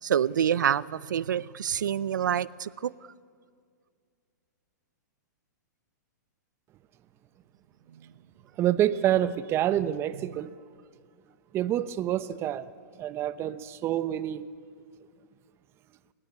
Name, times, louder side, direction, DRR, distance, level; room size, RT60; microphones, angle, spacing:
voice 1, 0.0-2.9 7.9-8.0 10.2-10.3, right 9 dB, 85° right, 0.7 m, -27 dB
voice 2, 8.6-10.5 11.5-12.7 13.0-14.5, right 12 dB, 25° right, 0.9 m, -27 dB
29.0 x 19.5 x 8.5 m
hypercardioid pair, 140°, 10 cm